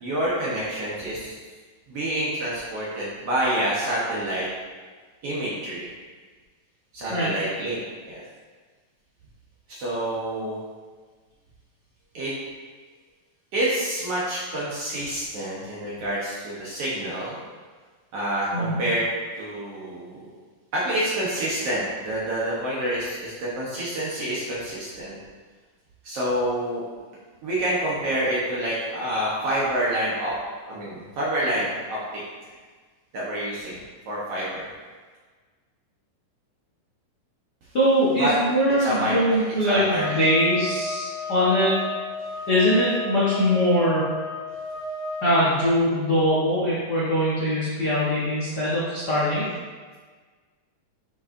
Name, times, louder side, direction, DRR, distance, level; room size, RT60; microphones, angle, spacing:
voice 1, 0.0-1.3 1.9-4.5 5.2-5.8 6.9-8.2 9.7-10.6 12.1-12.3 13.5-17.3 18.1-19.1 19.3-20.3 20.7-25.2 26.0-26.8 27.4-30.4 30.7-32.2 32.5-32.6 33.1-33.8 34.0-34.7 38.2-38.3 38.8-40.2, right 1 dB, 65° right, -7 dB, 1.6 m, -27 dB
voice 2, 37.7-41.8 42.5-44.0 45.2-49.4, equal, 85° left, -9 dB, 0.9 m, -22 dB
sound 1, 39.9-45.4, left 2 dB, 70° left, 1.5 m, -33 dB
8.4 x 5.3 x 2.6 m, 1.5 s
omnidirectional pair, 4.0 m